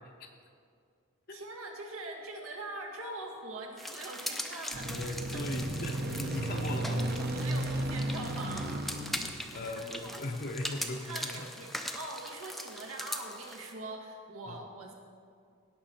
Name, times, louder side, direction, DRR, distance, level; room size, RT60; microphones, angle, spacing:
voice 1, 1.3-5.4 7.3-8.8 9.3-10.2 10.9-14.9, right 2 dB, 85° right, 1 dB, 1.6 m, -43 dB
sound 1, 3.8-13.7, equal, ahead, 0.4 m, -41 dB
sound 2, 4.7-10.2, right 1 dB, 50° right, 0.8 m, -34 dB
voice 2, 4.8-7.1 9.5-11.5 14.5-14.6, left 2 dB, 45° left, 2 dB, 0.7 m, -39 dB
17.0 x 5.8 x 4.4 m, 2.3 s
head